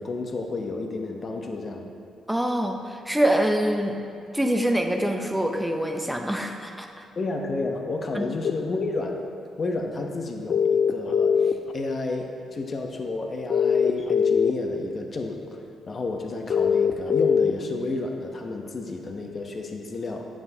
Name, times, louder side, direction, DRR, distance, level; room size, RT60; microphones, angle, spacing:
voice 1, 0.0-1.9 7.2-9.2 9.6-15.6 15.9-20.3, left 3 dB, 40° left, 3 dB, 0.8 m, -31 dB
voice 2, 2.3-4.0 4.3-7.0 8.1-8.2, right 1 dB, 5° right, 4 dB, 0.7 m, -25 dB
sound 1, 8.4-8.5 10.5-11.7 13.5-14.5 16.5-17.5, left 6 dB, 55° left, 0.3 m, -21 dB
9.5 x 7.3 x 2.8 m, 2.6 s
cardioid pair, 90°, 0 cm